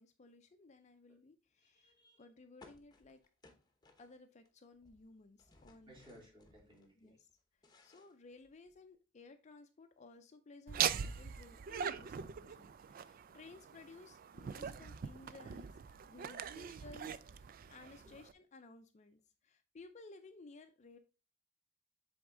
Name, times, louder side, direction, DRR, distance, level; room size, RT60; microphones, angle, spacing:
voice 1, 0.0-3.2 4.0-6.0 7.0-7.3 7.8-21.0, left 3 dB, 35° left, 8 dB, 0.5 m, -58 dB
voice 2, 1.6-2.2 5.9-7.2 18.0-18.1, equal, 25° right, -4 dB, 3.2 m, -61 dB
sound 1, 2.6-4.5 4.7-6.9 7.3-8.9, left 2 dB, 20° left, 0.9 m, -64 dB
Laughter, 10.7-18.3, right 8 dB, 45° right, 0.3 m, -41 dB
7.9 x 3.6 x 3.7 m, 0.33 s
head